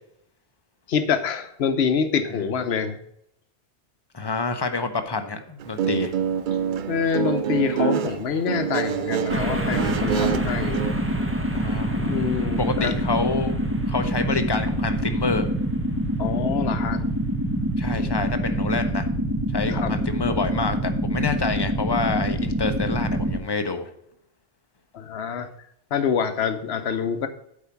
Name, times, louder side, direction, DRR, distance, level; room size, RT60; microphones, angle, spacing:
voice 1, 0.9-3.0 6.9-10.8 12.1-12.9 16.2-17.0 19.7-19.9 24.9-25.5 25.9-27.3, left 6 dB, 60° left, 9 dB, 1.1 m, -26 dB
voice 2, 4.1-6.1 11.5-12.2 12.5-13.6 13.9-15.5 17.8-19.1 19.5-23.9, left 4 dB, 25° left, 8 dB, 0.8 m, -27 dB
Guitar, 5.6-10.9, right 8 dB, 55° right, 0.6 m, -26 dB
sound 1, 9.3-23.4, right 1 dB, 10° right, 0.9 m, -25 dB
8.4 x 4.9 x 7.1 m, 0.74 s
omnidirectional pair, 1.2 m